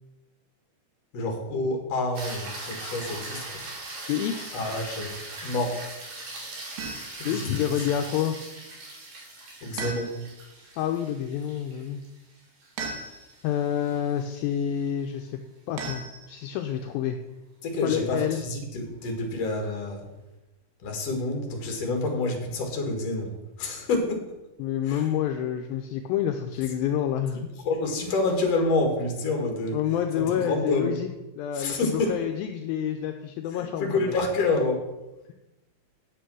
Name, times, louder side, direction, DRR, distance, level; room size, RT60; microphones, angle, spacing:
voice 1, 1.1-3.4 4.5-5.1 5.4-5.8 7.2-7.5 9.6-10.2 17.6-20.0 20.8-24.3 24.8-25.1 27.6-29.8 30.1-31.0 31.5-32.2 33.5-34.9, left 2 dB, 50° left, 3 dB, 2.4 m, -28 dB
sound 1, 2.1-14.5 19.0-19.1, right 2 dB, 55° right, 4.0 m, -40 dB
voice 2, 4.1-4.5 7.3-8.4 10.8-12.0 13.4-15.3 15.7-17.2 17.8-18.4 24.6-27.5 29.7-31.1 31.4-33.9, left 9 dB, 80° left, 5 dB, 2.3 m, -28 dB
sound 2, 6.8-7.3 9.8-10.5 12.8-13.5 15.8-16.7, right 4 dB, 85° right, 3.7 m, -37 dB
9.2 x 6.8 x 6.2 m, 1.0 s
omnidirectional pair, 4.5 m